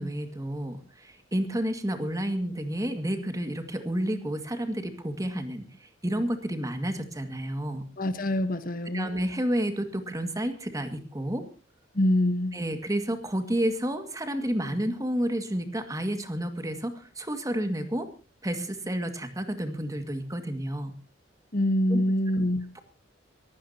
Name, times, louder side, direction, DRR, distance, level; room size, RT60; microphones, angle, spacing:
voice 1, 0.0-7.8 8.9-11.5 12.5-18.1 18.4-20.9 21.9-22.0 22.8-22.9, right 1 dB, 20° right, 7 dB, 2.1 m, -30 dB
voice 2, 8.0-9.1 11.9-12.6 21.5-22.7, left 1 dB, 50° left, 11 dB, 1.3 m, -25 dB
22.5 x 16.0 x 2.9 m, 0.33 s
head